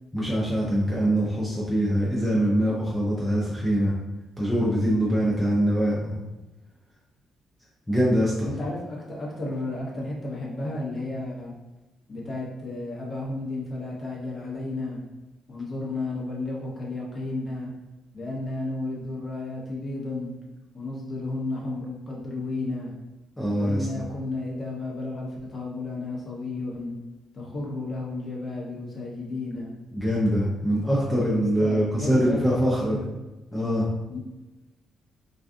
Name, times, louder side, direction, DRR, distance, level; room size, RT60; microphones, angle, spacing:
voice 1, 0.1-3.9 4.4-6.2 7.9-8.5 23.4-23.9 29.9-33.0 33.5-33.9, equal, 5° left, -6 dB, 0.5 m, -23 dB
voice 2, 4.8-5.1 8.4-11.5 12.1-15.0 15.5-17.7 18.1-20.3 20.7-23.0 23.6-27.0 27.3-29.7 31.3-33.1 34.1-34.2, left 2 dB, 35° left, -4 dB, 0.8 m, -33 dB
2.5 x 2.3 x 2.4 m, 1.0 s
cardioid pair, 90°, 0 cm